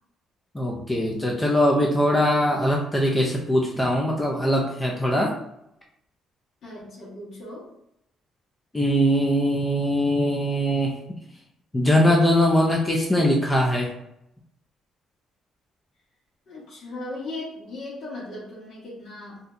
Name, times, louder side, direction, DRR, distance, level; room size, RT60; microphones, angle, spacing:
voice 1, 0.5-5.3 8.7-11.0 11.7-13.9, equal, 10° left, -1 dB, 0.4 m, -21 dB
voice 2, 6.6-7.7 16.5-19.4, left 2 dB, 50° left, -9 dB, 1.2 m, -37 dB
2.6 x 2.2 x 3.7 m, 0.79 s
cardioid pair, 155°, 0 cm